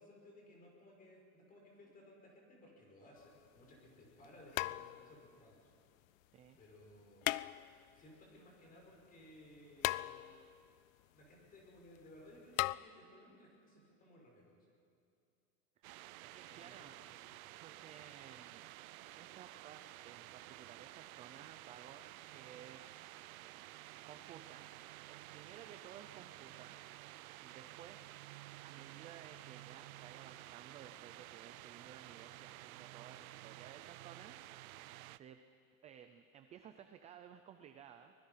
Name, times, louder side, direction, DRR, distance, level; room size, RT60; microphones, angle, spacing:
voice 1, 0.0-5.7 6.6-7.3 7.9-10.2 11.1-14.7 16.5-17.2 17.5-17.6, left 1 dB, 20° left, -1 dB, 5.7 m, -60 dB
sound 1, 3.2-3.3 4.5-5.3 7.2-8.0 9.8-10.6 12.6-12.8, left 18 dB, 70° left, 0.5 m, -37 dB
voice 2, 15.8-17.0 17.6-18.6 19.2-23.2 24.0-24.7 25.1-28.2 28.6-34.8 35.1-35.4 35.8-38.1, right 9 dB, 15° right, 8 dB, 0.5 m, -57 dB
sound 2, 15.8-35.2, right 17 dB, 75° right, 0.6 m, -53 dB
24.5 x 20.5 x 5.7 m, 2.5 s
supercardioid pair, 155°, 42 cm